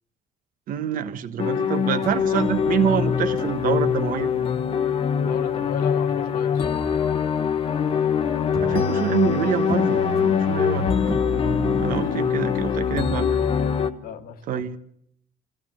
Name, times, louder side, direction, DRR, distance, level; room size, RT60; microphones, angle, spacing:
voice 1, 0.7-4.3 8.6-10.9 11.8-13.3 14.5-14.8, right 9 dB, 55° right, 9 dB, 1.3 m, -26 dB
sound 1, 1.4-13.9, left 7 dB, 35° left, 1.0 m, -23 dB
sound 2, 1.5-1.8 2.0-8.2 8.5-12.0, right 3 dB, 20° right, 1.6 m, -35 dB
voice 2, 5.1-6.8 12.0-12.2 14.0-14.8, left 7 dB, 60° left, 10 dB, 1.6 m, -36 dB
23.5 x 15.5 x 7.6 m, 0.72 s
cardioid pair, 175°, 17 cm